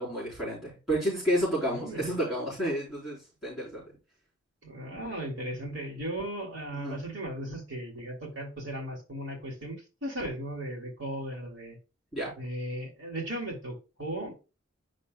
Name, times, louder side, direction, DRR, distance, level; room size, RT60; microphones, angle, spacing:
voice 1, 0.0-3.8 6.7-7.0 12.1-12.3, equal, ahead, 4.2 m, -30 dB
voice 2, 1.7-2.1 4.6-11.8 12.4-14.3, right 1 dB, 55° right, 2.6 m, -36 dB
9.8 x 5.3 x 2.3 m
head